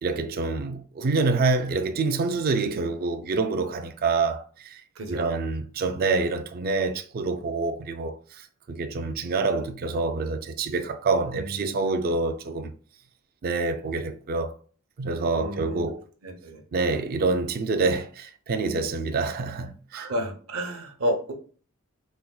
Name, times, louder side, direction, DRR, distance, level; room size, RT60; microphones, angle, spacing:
voice 1, 0.0-4.8 5.1-8.2 8.7-12.7 13.4-14.5 15.0-16.0 16.7-20.1, right 3 dB, 45° right, 0.4 m, -26 dB
voice 2, 4.9-5.3 11.3-12.0 15.3-15.9 16.2-16.6 19.9-21.3, equal, 65° right, 0.8 m, -31 dB
4.3 x 2.1 x 2.3 m
head